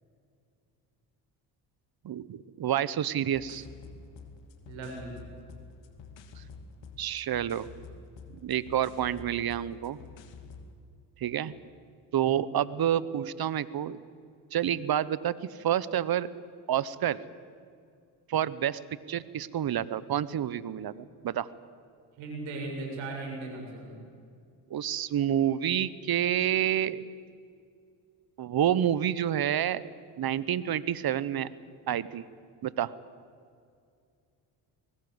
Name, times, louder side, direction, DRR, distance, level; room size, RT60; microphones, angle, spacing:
voice 1, 2.0-3.7 6.4-6.5 7.0-7.7 8.4-10.0 11.2-11.5 12.1-14.0 14.5-16.3 16.7-17.2 18.3-18.8 19.1-21.5 24.7-27.1 28.4-29.9 30.2-31.5 31.9-32.2 32.6-32.9, right 10 dB, 50° right, 18 dB, 1.1 m, -28 dB
sound 1, 3.3-10.7, left 4 dB, 70° left, 2.5 m, -48 dB
voice 2, 4.7-5.1 22.2-24.0, right 2 dB, 85° right, 0 dB, 7.3 m, -37 dB
24.5 x 19.0 x 8.1 m, 2.3 s
supercardioid pair, 70°, 45 cm